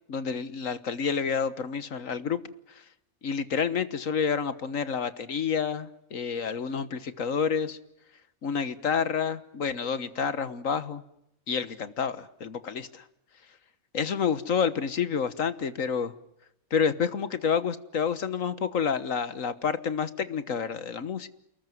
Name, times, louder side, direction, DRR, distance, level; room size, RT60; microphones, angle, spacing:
voice 1, 0.1-2.4 3.2-7.8 8.4-11.0 11.5-13.0 13.9-16.1 16.7-21.3, left 6 dB, 80° left, 13 dB, 1.7 m, -29 dB
29.5 x 19.5 x 9.3 m, 0.80 s
omnidirectional pair, 1.4 m